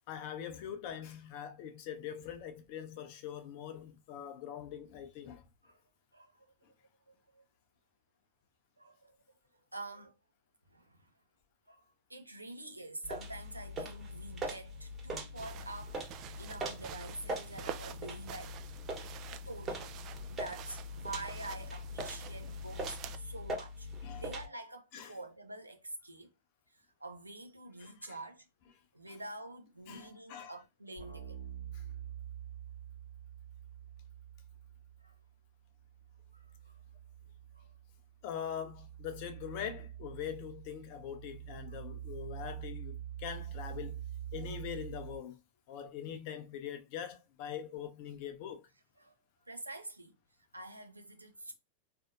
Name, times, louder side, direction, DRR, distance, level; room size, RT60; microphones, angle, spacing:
voice 1, 0.1-5.4 24.0-24.2 24.9-25.1 27.8-28.2 29.1-29.2 29.9-30.5 31.7-31.8 38.2-43.9 44.3-45.4 45.7-48.7, left 9 dB, 45° left, 0.6 m, -43 dB
voice 2, 6.1-6.5 7.1-7.4 8.8-9.2 9.5-10.2 10.7-11.1 11.7-18.6 19.0-19.2 19.4-26.3 26.7-28.5 28.9-31.4 35.0-35.2 36.3-36.8 37.5-37.8 41.7-41.8 49.0-49.1 49.4-50.2 50.5-51.5, right 2 dB, 85° right, 0.6 m, -47 dB
sound 1, 13.0-24.5, equal, 20° right, 1.2 m, -42 dB
sound 2, 15.4-23.2, right 9 dB, 40° right, 0.4 m, -48 dB
sound 3, 31.0-35.3 35.6-45.2, right 10 dB, 80° left, 1.1 m, -46 dB
4.1 x 2.6 x 2.6 m
figure-of-eight pair, 90°, 0 cm